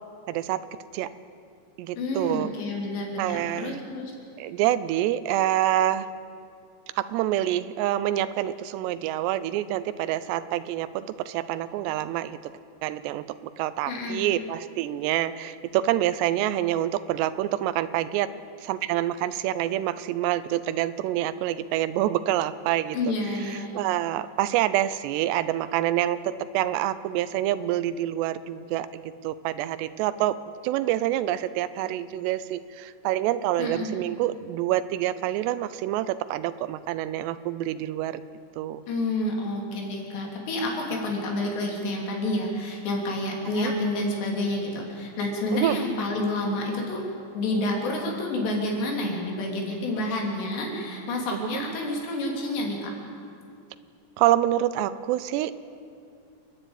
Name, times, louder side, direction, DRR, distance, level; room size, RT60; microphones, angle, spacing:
voice 1, 0.3-0.6 0.9-1.1 1.8-2.5 3.2-3.8 4.4-6.1 7.0-12.4 12.8-13.3 13.6-18.3 18.6-23.1 23.4-30.4 30.6-38.2 38.6-38.8 43.6-43.7 45.5-45.8 51.3-51.6 54.2-55.6, right 13 dB, 90° right, 14 dB, 2.8 m, -27 dB
voice 2, 2.0-4.1 13.9-14.2 22.9-23.7 33.6-33.9 38.9-47.0 47.4-52.9, left 1 dB, 90° left, 0 dB, 5.2 m, -29 dB
29.0 x 10.0 x 8.9 m, 2.4 s
omnidirectional pair, 4.8 m